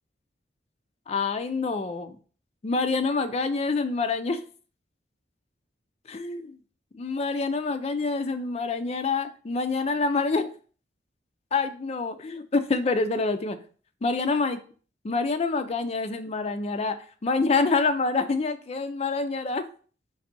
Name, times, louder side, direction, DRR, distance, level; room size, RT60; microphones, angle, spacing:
voice 1, 1.1-2.2 2.6-4.4 6.1-6.6 6.9-10.5 11.5-13.6 14.0-14.6 15.0-17.0 17.2-19.7, left 3 dB, 35° left, 9 dB, 0.4 m, -26 dB
4.0 x 2.6 x 4.2 m, 0.41 s
head